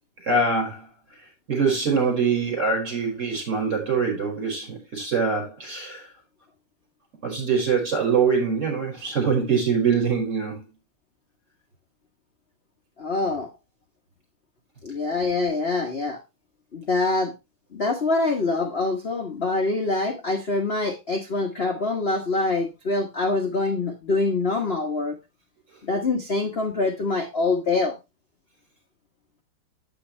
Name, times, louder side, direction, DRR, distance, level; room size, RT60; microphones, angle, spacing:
voice 1, 0.2-0.9 1.5-6.1 7.2-10.7, right 5 dB, 30° right, 5.5 m, -24 dB
voice 2, 13.0-13.5 14.8-16.2 16.7-17.3 17.7-25.2 25.8-28.0, left 3 dB, 35° left, 1.1 m, -25 dB
9.0 x 8.5 x 3.2 m
omnidirectional pair, 2.4 m